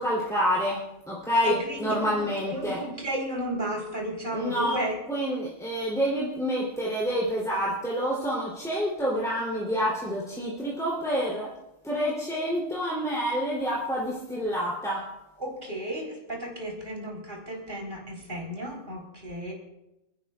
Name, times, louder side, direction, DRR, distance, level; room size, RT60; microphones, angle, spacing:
voice 1, 0.0-2.8 4.3-4.8 5.1-11.5 11.8-15.0, equal, ahead, -6 dB, 3.1 m, -28 dB
voice 2, 1.4-5.0 15.4-19.5, right 1 dB, 40° right, -2 dB, 4.2 m, -33 dB
29.5 x 11.0 x 2.4 m, 0.91 s
omnidirectional pair, 1.4 m